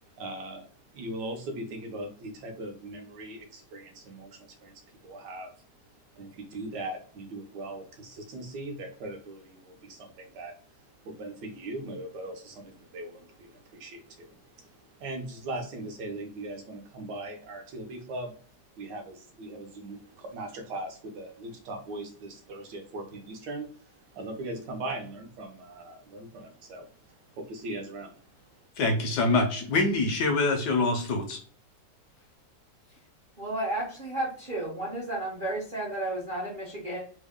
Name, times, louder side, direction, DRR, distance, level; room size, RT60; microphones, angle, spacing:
voice 1, 0.2-5.5 6.2-10.6 11.0-18.4 18.8-28.7, right 2 dB, 70° right, 4 dB, 1.2 m, -40 dB
voice 2, 28.8-31.4, left 2 dB, 70° left, 4 dB, 1.1 m, -25 dB
voice 3, 33.4-37.0, right 1 dB, 45° right, -4 dB, 0.6 m, -32 dB
3.5 x 2.1 x 3.4 m, 0.43 s
omnidirectional pair, 2.1 m